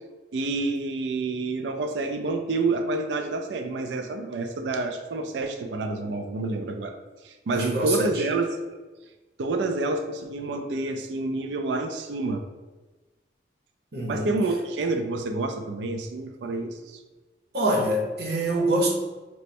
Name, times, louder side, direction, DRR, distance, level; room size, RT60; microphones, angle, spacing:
voice 1, 0.3-6.9 7.2-8.6 9.4-12.4 14.1-17.0, right 3 dB, 85° right, 6 dB, 0.3 m, -28 dB
voice 2, 7.5-8.3 13.9-14.3 17.5-18.9, right 1 dB, 65° right, -2 dB, 0.8 m, -25 dB
3.2 x 2.1 x 4.2 m, 1.2 s
head